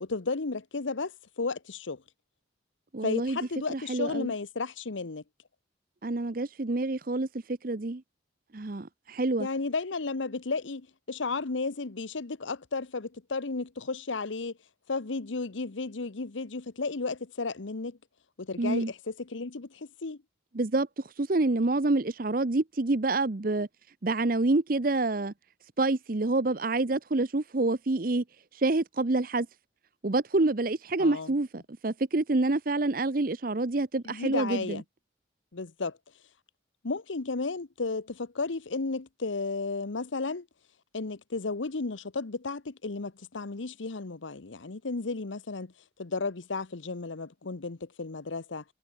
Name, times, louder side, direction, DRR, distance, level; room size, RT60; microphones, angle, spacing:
voice 1, 0.0-2.0 3.0-5.2 9.4-14.5 14.9-18.0 18.4-20.2 31.0-31.3 34.0-34.8 35.5-36.0 36.8-40.5 40.9-45.7 46.0-48.6, left 3 dB, 90° left, 1.0 m, -33 dB
voice 2, 2.9-3.4 3.7-4.3 6.0-8.0 8.5-9.5 18.6-18.9 20.5-23.7 24.0-25.3 25.8-28.2 28.5-29.5 30.0-34.8, right 2 dB, 50° right, 0.8 m, -27 dB
head